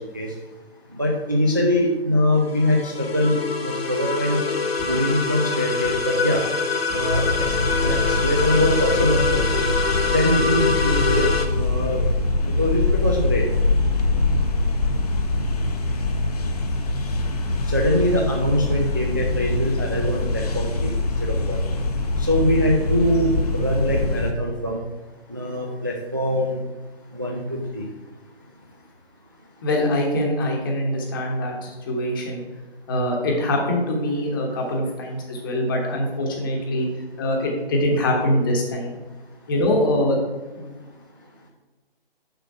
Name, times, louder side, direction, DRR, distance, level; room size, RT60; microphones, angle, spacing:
voice 1, 1.0-4.4 4.9-6.4 6.9-9.7 10.1-12.0 12.5-13.4 17.7-20.9 21.2-21.6 22.2-24.8 25.3-26.6 27.1-27.9, left 1 dB, 20° right, 0 dB, 0.4 m, -23 dB
sound 1, 2.4-11.5, left 4 dB, 75° left, 1.1 m, -25 dB
sound 2, 4.8-4.9 5.8-5.9 6.9-7.0 7.9-8.0 9.0-9.1 10.0-10.1 10.6-10.8 11.1-11.2 12.2-12.3 13.2-13.3 14.3-14.4 15.3-15.4 16.4-16.5 17.4-17.5 18.2-18.6, left 2 dB, 5° left, 0.9 m, -36 dB
sound 3, 7.1-24.3, left 2 dB, 40° left, 0.8 m, -24 dB
voice 2, 29.6-32.4 32.9-36.9 37.2-39.0 39.5-40.2 40.6-40.7, left 1 dB, 20° left, 1 dB, 1.1 m, -23 dB
6.6 x 6.2 x 4.6 m, 1.2 s
figure-of-eight pair, 155°, 31 cm